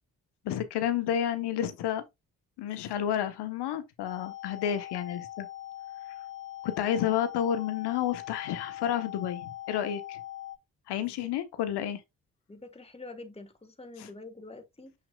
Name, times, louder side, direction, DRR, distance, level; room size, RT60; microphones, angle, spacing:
voice 1, 0.4-2.0 2.6-5.5 6.6-10.2 10.9-12.0 14.0-14.1, left 10 dB, 65° left, 1.1 m, -30 dB
sound 1, 4.1-10.6, left 14 dB, 50° left, 2.3 m, -42 dB
voice 2, 12.5-14.9, left 2 dB, 15° left, 1.7 m, -46 dB
7.1 x 5.8 x 2.4 m
hypercardioid pair, 40°, 43 cm